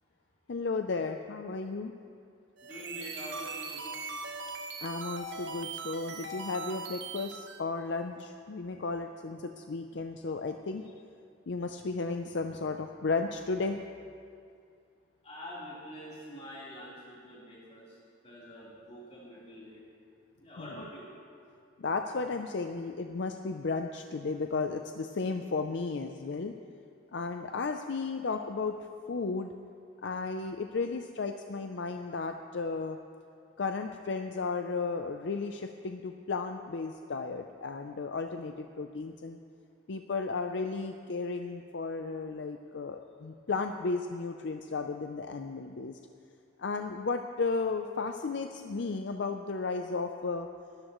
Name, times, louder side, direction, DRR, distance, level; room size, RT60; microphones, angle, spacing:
voice 1, 0.5-1.9 4.8-10.9 11.5-13.8 20.6-20.8 21.8-26.5 27.1-28.8 29.1-29.5 30.0-33.0 33.6-39.4 39.9-46.0 46.6-50.5, left 4 dB, 60° left, 5 dB, 0.5 m, -34 dB
voice 2, 2.6-3.8 8.9-9.0 15.2-18.0 18.2-19.8 20.4-21.1, equal, 30° left, -8 dB, 3.8 m, -45 dB
sound 1, 2.6-7.6, right 4 dB, 65° right, 0.8 m, -40 dB
20.5 x 13.0 x 3.1 m, 2.4 s
head